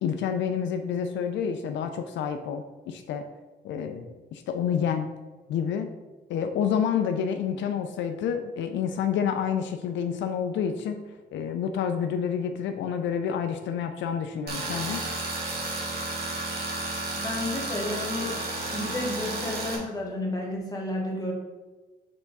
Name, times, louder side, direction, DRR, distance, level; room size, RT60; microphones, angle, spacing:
voice 1, 0.0-3.2 3.6-5.1 5.5-5.9 6.3-11.0 11.3-15.0, left 7 dB, 80° left, 7 dB, 0.5 m, -28 dB
Tools, 14.5-19.8, right 2 dB, 55° right, 1.6 m, -32 dB
voice 2, 17.2-18.4 18.7-21.3, left 1 dB, 20° left, -2 dB, 1.3 m, -31 dB
6.7 x 3.5 x 4.0 m, 1.3 s
cardioid pair, 145°, 19 cm